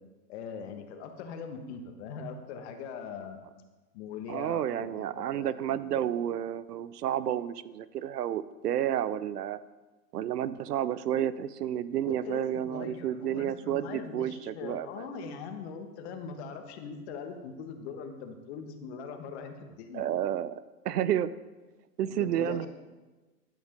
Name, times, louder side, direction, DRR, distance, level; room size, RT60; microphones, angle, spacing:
voice 1, 0.3-3.5 3.9-6.0 12.0-20.0 22.1-22.7, left 6 dB, 40° left, 6 dB, 1.3 m, -41 dB
voice 2, 4.3-9.6 10.1-15.1 19.9-21.3 22.0-22.7, right 11 dB, 75° right, 16 dB, 0.6 m, -31 dB
12.0 x 5.2 x 5.3 m, 1.2 s
hypercardioid pair, 130°, 48 cm